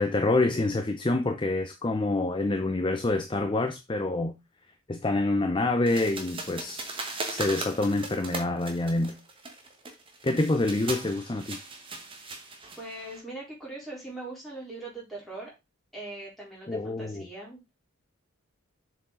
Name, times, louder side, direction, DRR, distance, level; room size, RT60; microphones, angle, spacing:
voice 1, 0.0-4.4 4.9-6.9 7.3-9.2 10.2-11.6 16.7-17.3, left 2 dB, 25° left, 0.5 m, -27 dB
sound 1, 5.9-13.2, right 3 dB, 25° right, 1.2 m, -38 dB
voice 2, 12.8-15.5 15.9-17.6, right 2 dB, ahead, 3.8 m, -41 dB
7.2 x 4.7 x 3.8 m
head